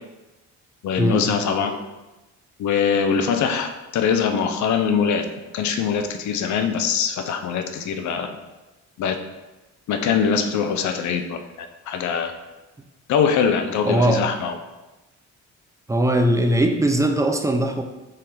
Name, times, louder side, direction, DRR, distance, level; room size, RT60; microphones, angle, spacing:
voice 1, 0.8-1.8 2.6-5.3 5.5-8.4 9.0-9.2 9.9-11.4 11.9-12.3 13.1-14.6, left 6 dB, 70° left, 7 dB, 0.6 m, -22 dB
voice 2, 13.8-14.3 15.9-17.8, right 1 dB, 10° right, 4 dB, 0.4 m, -20 dB
4.2 x 3.7 x 3.3 m, 1.1 s
cardioid pair, 90°, 30 cm